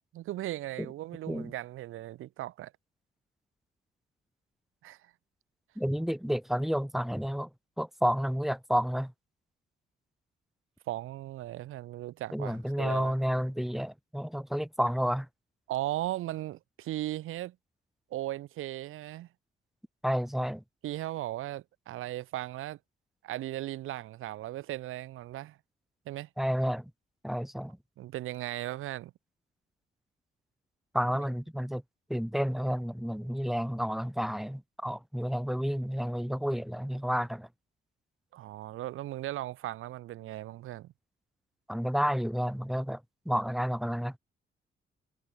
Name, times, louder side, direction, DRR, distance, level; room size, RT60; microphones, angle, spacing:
voice 1, 0.1-2.7 4.8-5.1 10.9-13.1 15.7-17.6 18.1-19.3 20.8-22.8 23.2-25.6 26.1-26.3 28.0-29.1 38.3-40.9, right 14 dB, 85° right, 0.6 m, -37 dB
voice 2, 5.8-7.5 7.8-9.1 12.3-15.3 20.0-20.6 26.4-26.9 27.2-27.8 30.9-31.8 32.1-37.5 41.7-44.2, equal, ahead, 0.9 m, -30 dB
cardioid pair, 80°, 21 cm